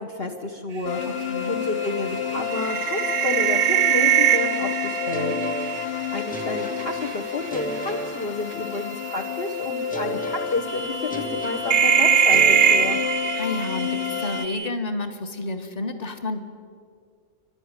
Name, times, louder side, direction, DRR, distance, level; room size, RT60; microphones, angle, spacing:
voice 1, 0.0-1.0 1.5-5.4 6.1-13.0, left 3 dB, 45° left, 4 dB, 1.4 m, -30 dB
sound 1, 0.8-14.5, left 9 dB, 60° left, 1.0 m, -30 dB
sound 2, 0.8-7.1 7.5-7.9 9.1-9.2 9.7-9.8 10.7-14.7, right 9 dB, 60° right, 0.9 m, -23 dB
voice 2, 1.1-1.6 13.3-16.4, left 2 dB, 30° left, 7 dB, 1.6 m, -30 dB
sound 3, 5.1-9.0 9.9-13.8, right 1 dB, 5° left, 0.9 m, -35 dB
28.5 x 12.5 x 9.8 m, 2.2 s
omnidirectional pair, 1.5 m